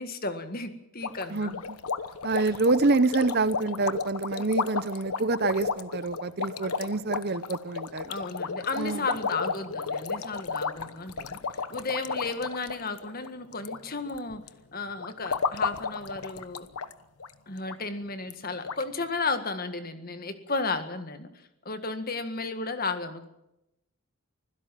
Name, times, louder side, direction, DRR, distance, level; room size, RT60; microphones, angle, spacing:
voice 1, 0.0-1.6 4.4-4.5 6.6-6.7 8.1-11.4 11.7-14.4 14.7-16.7 17.5-21.3 21.7-23.3, left 3 dB, 40° left, 9 dB, 1.8 m, -33 dB
sound 1, 1.0-13.8 14.1-14.5 15.0-16.9 17.2-17.3 17.7-17.8 18.3-18.4 18.7-18.8, left 5 dB, 80° left, 1.1 m, -33 dB
voice 2, 2.2-8.1 8.8-9.0, right 3 dB, 45° right, 15 dB, 0.8 m, -26 dB
25.0 x 16.5 x 7.5 m, 0.87 s
head